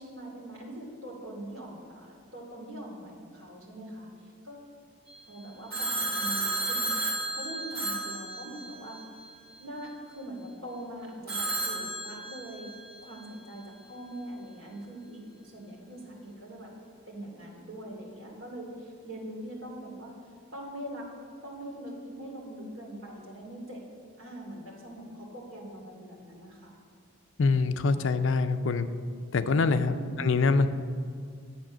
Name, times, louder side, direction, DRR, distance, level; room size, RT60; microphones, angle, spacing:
voice 1, 0.0-4.7 5.3-6.9 7.3-9.0 9.6-12.7 13.0-16.7 17.1-20.1 20.5-21.1 21.4-23.8 24.2-26.8 29.8-30.3, right 1 dB, 70° right, -2 dB, 2.6 m, -42 dB
Telephone, 5.7-9.0 11.3-12.8, right 2 dB, 45° right, 2.5 m, -32 dB
voice 2, 27.4-28.9 29.3-30.7, left 4 dB, 65° left, 10 dB, 0.5 m, -24 dB
10.5 x 7.7 x 6.2 m, 2.1 s
head